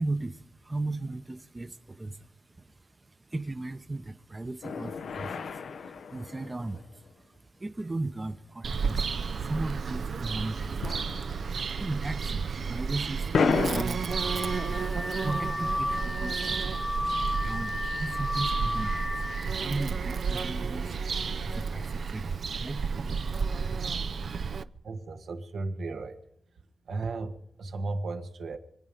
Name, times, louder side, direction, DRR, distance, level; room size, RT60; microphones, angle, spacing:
voice 1, 0.0-2.3 2.6-11.0 11.4-14.7 15.0-22.9, right 2 dB, 25° right, 9 dB, 0.8 m, -37 dB
sound 1, 4.6-7.1 10.8-11.6 11.8-11.9 13.3-13.8, left 5 dB, 85° left, 0.8 m, -30 dB
Bird vocalization bird call bird song, 8.6-24.6, right 5 dB, 65° right, 0.5 m, -32 dB
Car / Alarm, 14.1-19.5, left 1 dB, 15° left, 1.1 m, -33 dB
voice 2, 24.8-26.2 26.9-28.6, right 3 dB, 85° right, 5 dB, 1.6 m, -35 dB
25.5 x 8.8 x 5.1 m, 0.81 s
wide cardioid pair, 100°, 0 cm